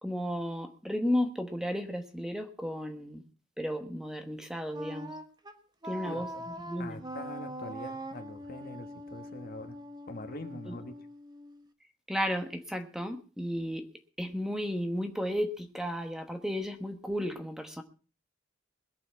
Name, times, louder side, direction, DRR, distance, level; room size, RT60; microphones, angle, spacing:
voice 1, 0.0-3.2 3.6-5.1 5.9-6.3 6.6-7.0 10.7-10.8 12.1-13.9 14.2-17.8, equal, 5° right, 6 dB, 1.1 m, -33 dB
Wind instrument woodwind instrument, 4.7-11.7, right 1 dB, 25° right, 1.3 m, -43 dB
voice 2, 6.0-6.5 6.8-9.7 10.1-11.1, left 2 dB, 50° left, 7 dB, 1.6 m, -43 dB
21.5 x 7.1 x 5.6 m, 0.38 s
head